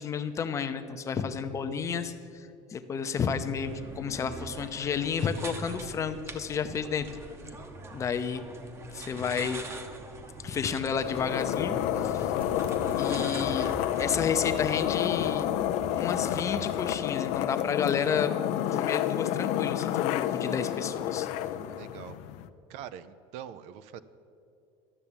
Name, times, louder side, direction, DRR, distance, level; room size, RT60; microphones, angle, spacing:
voice 1, 0.0-7.1 7.9-8.4 8.9-9.6 10.4-12.3 13.0-13.7 14.0-15.5 15.9-18.3 18.7-21.3, left 6 dB, 25° left, 9 dB, 0.7 m, -31 dB
sound 1, 3.6-15.5, right 3 dB, 20° right, 0.9 m, -44 dB
sound 2, 10.9-22.5, left 12 dB, 65° left, 0.5 m, -30 dB
sound 3, 11.5-16.9, right 3 dB, 45° right, 1.3 m, -44 dB
voice 2, 21.7-22.2 22.7-24.0, right 10 dB, 65° right, 13 dB, 0.5 m, -43 dB
12.5 x 7.0 x 8.8 m, 2.5 s
cardioid pair, 155°, 12 cm